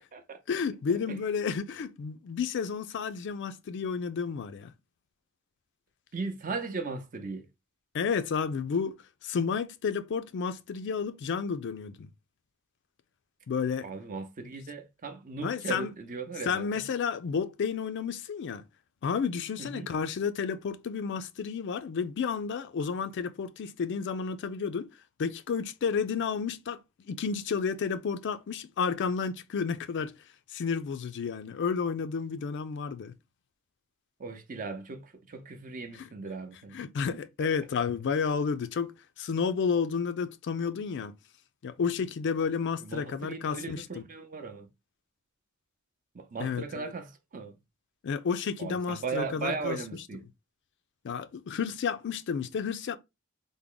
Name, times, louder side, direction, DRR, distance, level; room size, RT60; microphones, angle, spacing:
voice 1, 0.5-4.7 7.9-12.1 13.5-13.9 15.4-15.9 16.4-18.6 19.0-24.9 25.2-26.8 27.1-30.2 30.5-33.1 36.0-36.1 36.7-41.1 41.6-44.0 46.4-46.8 48.0-49.8 51.0-53.0, left 6 dB, 55° left, 0.4 m, -31 dB
voice 2, 6.1-7.5 13.8-16.7 19.6-19.9 34.2-37.1 37.4-37.5 42.8-44.7 46.1-47.6 48.6-50.2, right 4 dB, 40° right, 0.6 m, -37 dB
3.4 x 2.1 x 3.7 m
head